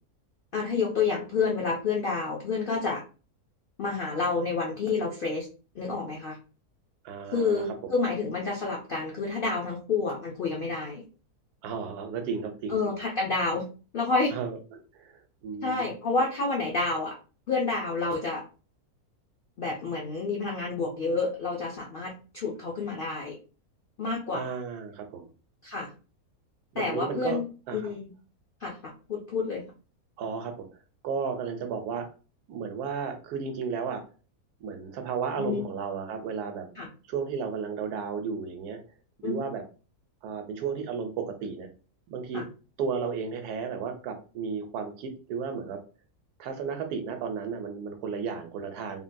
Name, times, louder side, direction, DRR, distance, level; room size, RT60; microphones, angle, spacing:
voice 1, 0.5-3.0 3.8-5.5 5.7-6.4 7.3-11.0 12.7-13.6 13.9-14.3 15.6-17.2 17.5-18.4 19.6-23.4 24.0-24.6 25.6-25.9 26.8-27.5 27.7-28.1 28.6-29.6 35.4-35.7 36.8-36.9 39.2-39.4 42.3-42.5, left 4 dB, 70° left, -1 dB, 0.5 m, -29 dB
voice 2, 7.0-7.6 11.6-12.8 14.3-14.6 14.9-15.9 24.3-25.3 26.7-27.4 27.7-27.8 30.2-30.5 31.0-32.1 32.5-34.0 34.6-36.7 37.1-38.8 39.2-39.6 40.2-41.7 42.1-42.4 42.8-45.8 46.4-49.0, right 6 dB, 85° right, 5 dB, 1.2 m, -33 dB
3.5 x 2.2 x 2.6 m, 0.35 s
omnidirectional pair, 1.6 m